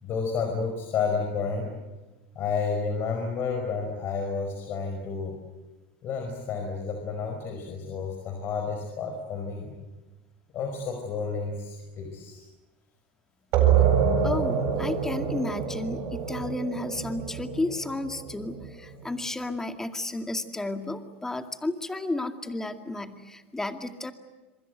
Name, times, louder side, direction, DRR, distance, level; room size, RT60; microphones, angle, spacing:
voice 1, 0.0-1.7 2.3-5.4 6.0-9.7 10.5-12.4, left 5 dB, 40° left, 4 dB, 5.1 m, -31 dB
sound 1, 13.5-18.9, right 8 dB, 50° right, 7.9 m, -26 dB
voice 2, 14.2-24.1, left 2 dB, 10° left, 7 dB, 2.2 m, -32 dB
26.5 x 24.5 x 8.0 m, 1.1 s
supercardioid pair, 120°, 6 cm